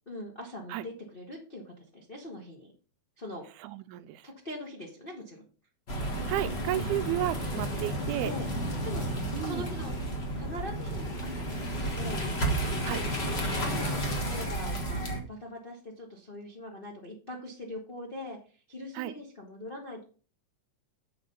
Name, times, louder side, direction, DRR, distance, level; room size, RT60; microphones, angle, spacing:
voice 1, 0.1-2.7 3.2-3.5 4.2-5.4 6.7-7.2 7.7-7.9 8.2-8.5 8.8-9.9 10.3-11.7 12.0-12.3 12.9-13.1 13.6-18.4 18.7-20.0, left 1 dB, 75° left, -2 dB, 0.5 m, -42 dB
voice 2, 3.6-4.2 6.3-8.3 9.3-9.7 12.8-13.0 19.0-19.1, right 14 dB, 90° right, 12 dB, 2.1 m, -32 dB
sound 1, 5.9-15.2, right 1 dB, 45° left, 0.7 m, -32 dB
7.8 x 5.0 x 5.3 m, 0.37 s
omnidirectional pair, 3.5 m